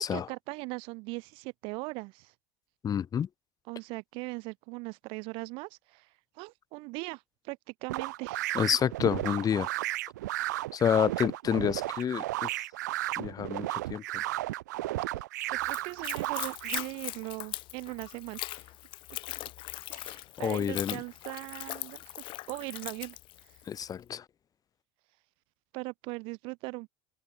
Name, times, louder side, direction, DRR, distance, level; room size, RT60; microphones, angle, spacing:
voice 1, 0.0-2.3 3.7-8.7 15.5-18.7 19.9-23.6 25.7-26.9, right 27 dB, 75° right, 2.5 m, -40 dB
voice 2, 2.8-3.3 8.5-9.7 10.7-12.6 13.2-14.2 20.4-21.0 23.7-24.2, left 8 dB, 40° left, 3.3 m, -29 dB
sound 1, 7.9-16.8, right 17 dB, 90° right, 2.2 m, -34 dB
Splash splatter / Trickle dribble, 15.6-23.9, left 17 dB, 65° left, 4.2 m, -41 dB
open air
supercardioid pair, 80°, 9 cm